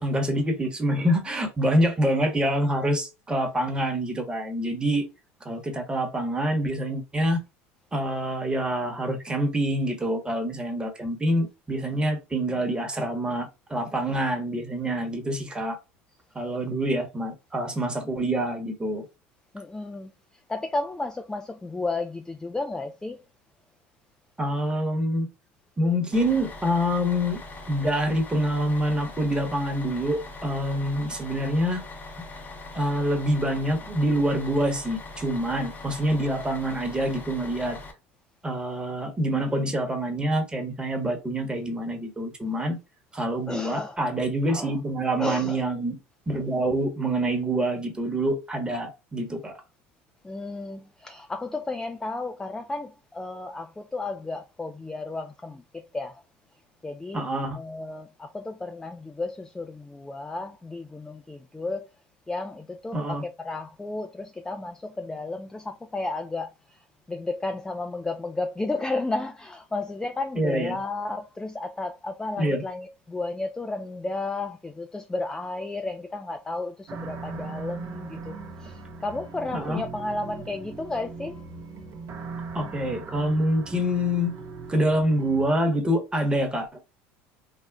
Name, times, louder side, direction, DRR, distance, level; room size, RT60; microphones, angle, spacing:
voice 1, 0.0-5.0 5.4-7.4 7.9-15.8 16.3-19.0 24.4-25.3 25.8-27.4 27.7-31.8 32.7-37.8 38.4-42.8 43.1-46.0 46.3-49.5 57.1-57.6 62.9-63.2 70.4-70.8 72.4-72.6 79.5-79.8 82.5-84.3 84.7-86.8, equal, 15° right, 1.0 m, -26 dB
voice 2, 19.5-20.1 20.5-23.2 43.5-44.0 44.5-44.8 45.2-45.6 50.2-55.6 55.9-56.2 56.8-57.2 57.5-61.9 62.3-66.5 67.1-81.4, left 2 dB, 10° left, 0.3 m, -33 dB
Bus, 26.1-37.9, left 2 dB, 30° left, 0.7 m, -41 dB
sound 1, 76.9-85.4, right 4 dB, 50° right, 0.6 m, -39 dB
3.6 x 2.0 x 2.2 m
supercardioid pair, 90°, 7 cm